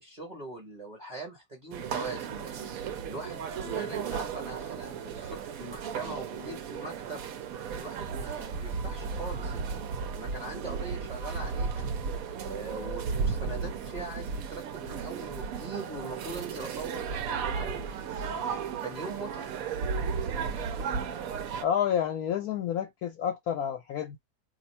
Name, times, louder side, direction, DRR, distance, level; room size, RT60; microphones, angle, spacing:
voice 1, 0.0-2.7 3.1-7.3 7.7-9.9 10.1-11.9 12.4-18.4 18.8-19.6, right 2 dB, 35° right, 0.9 m, -41 dB
sound 1, 1.7-21.6, right 6 dB, 70° right, 1.0 m, -34 dB
voice 2, 21.6-24.2, left 9 dB, 70° left, 1.1 m, -29 dB
2.7 x 2.5 x 4.3 m
omnidirectional pair, 1.7 m